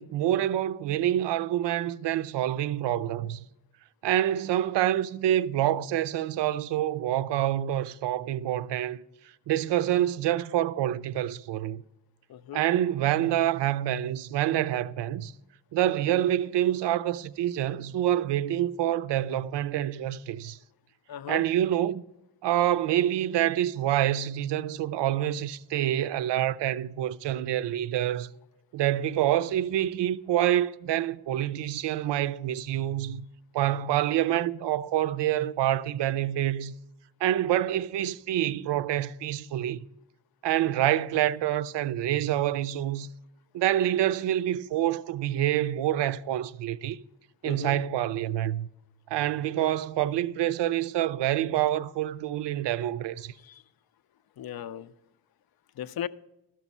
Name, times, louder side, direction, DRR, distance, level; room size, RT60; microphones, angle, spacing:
voice 1, 0.0-3.4 4.0-9.0 9.5-11.8 12.5-15.3 15.7-20.6 21.3-22.0 22.4-28.3 28.7-33.3 33.5-36.7 37.2-39.8 40.4-43.1 43.5-47.0 47.4-48.7 49.1-53.3, right 12 dB, 90° right, 0.5 m, -27 dB
voice 2, 12.3-12.6 21.1-21.4 40.6-40.9 47.4-47.8 53.4-53.6 54.4-54.9 55.8-56.1, left 10 dB, 60° left, 0.5 m, -37 dB
13.0 x 6.1 x 5.4 m
wide cardioid pair, 140°, 41 cm